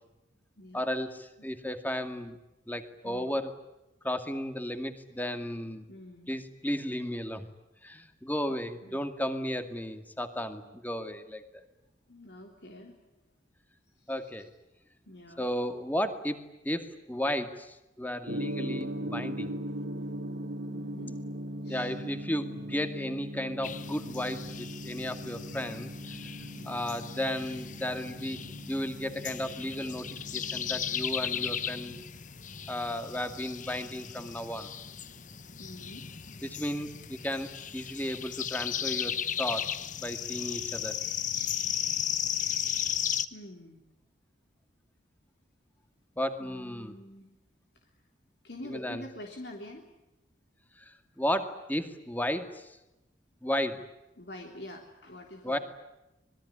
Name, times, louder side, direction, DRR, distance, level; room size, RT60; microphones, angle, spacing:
voice 1, 0.7-2.4 2.7-3.5 4.0-5.9 6.3-7.5 7.8-11.6 14.1-14.5 15.4-16.4 16.6-19.5 21.7-25.9 26.7-28.4 28.7-30.1 30.3-32.0 32.7-34.7 36.4-41.0 46.2-46.9 48.6-49.0 50.8-52.8 53.4-53.8 55.4-55.6, left 1 dB, 10° left, 8 dB, 2.3 m, -34 dB
voice 2, 3.0-3.4 5.9-6.3 8.8-9.0 12.1-13.0 13.9-14.3 15.0-15.5 20.7-21.2 21.6-21.9 26.6-26.9 32.5-32.7 35.6-36.1 43.3-43.8 46.4-47.3 48.4-49.8 54.2-55.6, left 1 dB, 60° left, 2 dB, 3.4 m, -46 dB
Gong, 18.3-32.0, equal, 75° right, 2.5 m, -39 dB
sound 1, 23.6-43.2, left 9 dB, 40° left, 1.1 m, -36 dB
26.0 x 21.5 x 9.9 m, 0.94 s
head